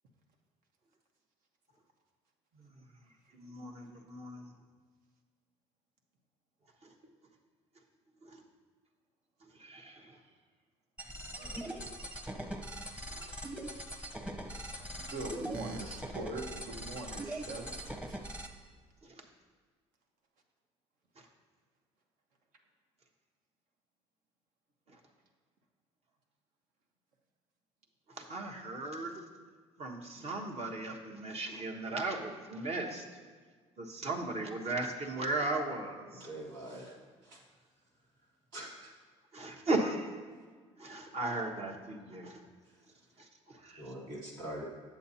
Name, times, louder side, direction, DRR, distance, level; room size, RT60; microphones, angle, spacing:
voice 1, 2.5-4.5 6.8-6.9 8.2-8.4 9.4-10.2 11.4-12.0 13.1-13.2 16.1-16.2 19.0-19.3 21.1-21.3 24.9-25.0 28.1-29.3 29.8-33.1 33.8-36.3 39.3-40.2 40.8-42.5 43.2-43.9, right 2 dB, 45° right, 2 dB, 1.1 m, -37 dB
sound 1, 11.0-18.5, right 1 dB, 10° right, 0.9 m, -41 dB
voice 2, 15.0-18.2, right 2 dB, 70° right, 2 dB, 1.1 m, -42 dB
voice 3, 36.1-36.9 37.2-37.4 38.5-38.9 43.8-44.7, right 1 dB, 85° right, -5 dB, 2.0 m, -43 dB
8.3 x 7.2 x 2.8 m, 1.5 s
hypercardioid pair, 65°, 15 cm